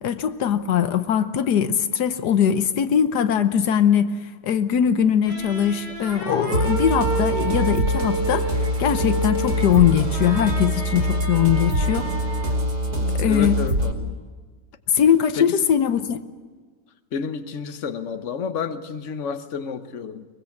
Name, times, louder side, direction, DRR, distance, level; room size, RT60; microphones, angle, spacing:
voice 1, 0.0-4.2 4.4-12.1 12.9-13.6 14.9-16.2, left 9 dB, 90° left, 11 dB, 1.5 m, -21 dB
sound 1, 5.2-12.7, right 2 dB, 25° left, 3.9 m, -31 dB
sound 2, 6.5-13.9, right 1 dB, 70° right, 2.9 m, -24 dB
voice 2, 13.2-14.2 15.4-15.5 17.1-20.3, left 6 dB, 50° left, 10 dB, 1.4 m, -30 dB
22.5 x 21.5 x 7.3 m, 1.4 s
omnidirectional pair, 1.7 m